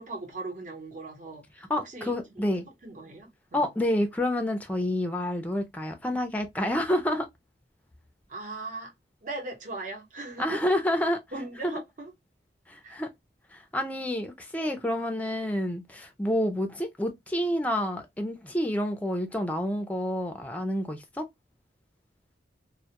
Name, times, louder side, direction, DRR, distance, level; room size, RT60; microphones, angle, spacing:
voice 1, 0.0-2.5 2.8-3.7 8.3-8.9 9.2-10.6 11.3-12.1 12.8-13.0, right 2 dB, 45° right, 0.9 m, -39 dB
voice 2, 1.7-2.6 3.5-7.3 10.4-11.2 12.7-13.1 13.5-21.2, left 1 dB, 10° left, 0.4 m, -28 dB
2.2 x 2.1 x 2.8 m
head